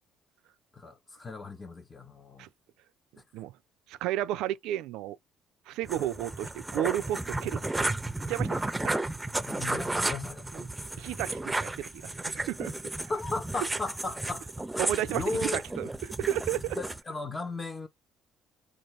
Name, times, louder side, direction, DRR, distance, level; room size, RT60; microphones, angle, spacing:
voice 1, 0.7-2.5 9.5-10.5 13.1-14.5 14.7-15.6 16.8-17.9, left 3 dB, 30° left, 0.9 m, -36 dB
voice 2, 3.9-5.2 5.7-7.6 8.3-8.6 8.8-8.9 10.5-10.7 11.0-11.9 12.3-12.7 14.8-16.8, right 13 dB, 70° right, 0.4 m, -32 dB
sound 1, 5.8-17.0, right 2 dB, 15° right, 0.6 m, -33 dB
4.1 x 2.5 x 3.2 m
hypercardioid pair, 50°, 0 cm